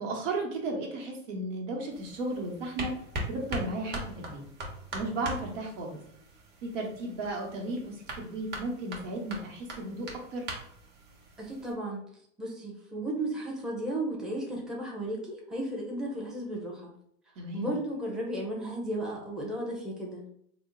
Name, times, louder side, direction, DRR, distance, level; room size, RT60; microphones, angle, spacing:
voice 1, 0.0-2.9 3.3-4.4 4.9-6.0 6.6-10.4 17.4-17.7, right 2 dB, 70° right, 0 dB, 1.3 m, -34 dB
sound 1, 1.9-11.7, right 1 dB, 25° right, 1.1 m, -41 dB
voice 2, 11.4-12.0 12.4-16.9 17.5-20.2, right 1 dB, ahead, -3 dB, 0.7 m, -34 dB
3.6 x 2.1 x 3.8 m, 0.69 s
hypercardioid pair, 110°, 40 cm